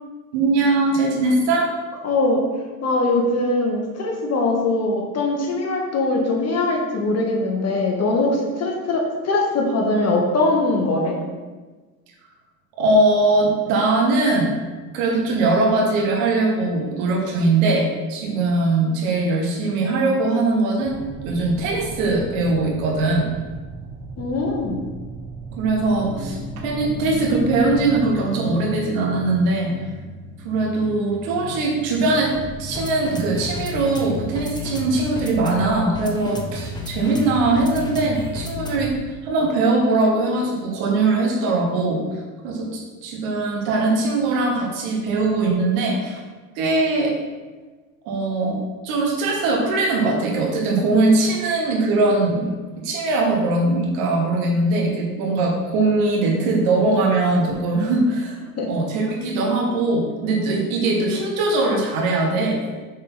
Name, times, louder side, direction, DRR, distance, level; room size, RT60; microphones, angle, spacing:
voice 1, 0.3-1.7 12.8-14.5 14.9-21.0 21.2-23.3 25.6-26.4 26.6-29.7 30.4-32.3 32.6-42.0 42.4-46.2 46.5-47.1 48.0-48.6 48.8-52.5 52.8-58.4 58.7-62.6, right 2 dB, 75° right, 0 dB, 1.7 m, -21 dB
voice 2, 2.0-2.4 2.8-11.2 24.2-24.8 58.6-58.7, left 2 dB, 35° left, 0 dB, 1.6 m, -21 dB
sound 1, 20.8-28.1, right 4 dB, 25° right, 1.1 m, -37 dB
sound 2, 26.0-39.1, left 3 dB, 10° left, 0.9 m, -33 dB
6.3 x 4.0 x 4.1 m, 1.3 s
hypercardioid pair, 90°, 41 cm